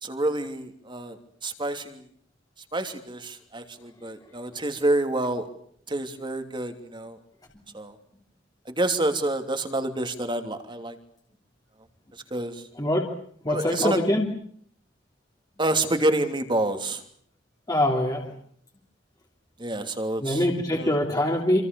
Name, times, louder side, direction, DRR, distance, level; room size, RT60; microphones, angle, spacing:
voice 1, 0.0-2.0 2.7-5.5 5.9-7.2 7.7-7.9 8.6-11.0 12.3-12.6 13.5-14.0 15.6-17.0 19.6-20.5 20.7-21.0, right 2 dB, 25° right, 7 dB, 3.0 m, -28 dB
voice 2, 12.8-13.1 13.4-14.2 17.7-18.3 20.2-21.6, left 1 dB, 20° left, 1 dB, 3.1 m, -23 dB
27.0 x 26.0 x 7.0 m, 0.63 s
head